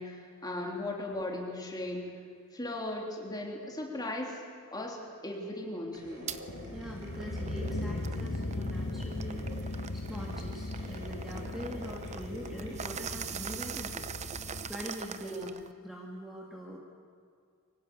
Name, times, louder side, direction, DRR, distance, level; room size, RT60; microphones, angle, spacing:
voice 1, 0.0-2.1 2.5-4.5 4.7-6.3 15.2-15.6, left 1 dB, 20° left, 0 dB, 3.4 m, -37 dB
sound 1, 5.9-12.9, equal, 60° right, 6.4 m, -48 dB
sound 2, 6.3-6.4 6.9-15.7, right 7 dB, 30° right, 0.7 m, -43 dB
sound 3, 6.5-14.7, left 2 dB, 75° left, 1.4 m, -38 dB
voice 2, 6.7-14.1 14.7-15.5 15.8-16.8, equal, ahead, -2 dB, 1.9 m, -43 dB
23.5 x 18.5 x 8.4 m, 2.2 s
head